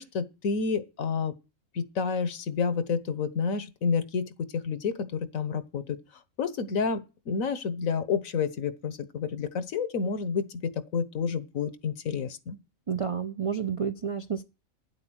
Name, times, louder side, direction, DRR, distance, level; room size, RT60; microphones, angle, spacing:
voice 1, 0.0-1.3 1.7-6.0 6.4-12.6, left 5 dB, 80° left, 1.4 m, -30 dB
voice 2, 12.9-14.4, right 7 dB, 50° right, 0.4 m, -30 dB
9.8 x 7.8 x 6.2 m
omnidirectional pair, 1.4 m